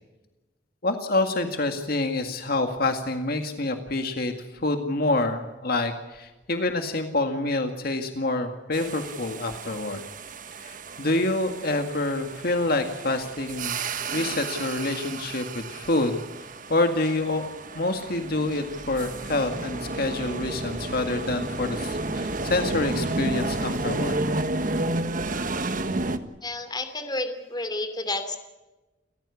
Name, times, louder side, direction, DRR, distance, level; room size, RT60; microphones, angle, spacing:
voice 1, 0.8-10.0 10.6-13.8 14.1-16.2 16.7-17.5 17.7-24.2, left 2 dB, 55° left, 6 dB, 2.0 m, -27 dB
sound 1, 8.7-26.2, right 2 dB, 45° right, 1.4 m, -32 dB
voice 2, 26.4-28.4, left 2 dB, 25° left, 8 dB, 2.9 m, -30 dB
29.5 x 15.0 x 8.4 m, 1.1 s
head